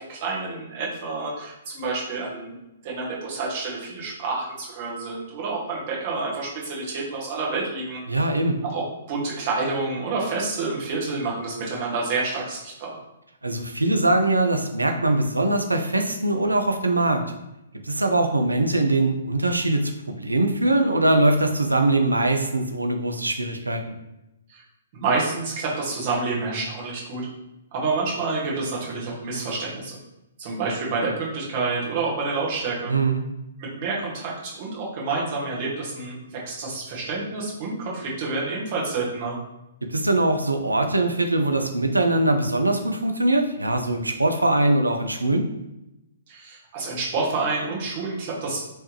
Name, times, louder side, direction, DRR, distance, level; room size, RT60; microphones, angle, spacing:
voice 1, 0.0-2.6 2.8-8.0 8.6-8.8 9.1-13.0 24.5-24.6 24.9-27.3 27.7-30.0 30.4-32.9 33.6-39.4 46.3-48.6, right 3 dB, 40° right, -4 dB, 1.4 m, -28 dB
voice 2, 8.1-8.6 13.4-17.2 17.8-24.0 32.9-33.2 39.9-45.4, right 2 dB, 85° right, 5 dB, 0.4 m, -22 dB
3.2 x 3.1 x 3.0 m, 0.91 s
figure-of-eight pair, 120°, 0 cm